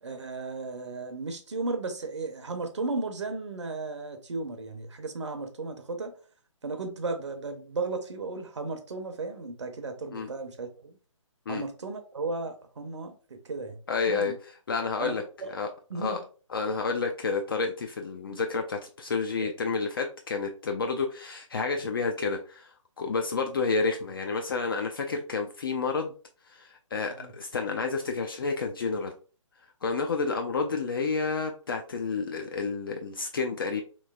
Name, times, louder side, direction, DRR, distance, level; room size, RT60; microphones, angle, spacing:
voice 1, 0.0-6.1 6.6-10.9 11.5-13.8 14.1-14.3 15.0-15.5 15.9-16.2 19.4-19.5 27.1-27.3, right 3 dB, 60° right, 6 dB, 0.6 m, -35 dB
voice 2, 13.9-15.2 15.5-15.7 15.9-16.2 16.5-26.1 26.5-29.1 29.8-33.8, left 4 dB, 45° left, 3 dB, 0.4 m, -30 dB
3.2 x 3.1 x 2.2 m, 0.37 s
figure-of-eight pair, 135°, 17 cm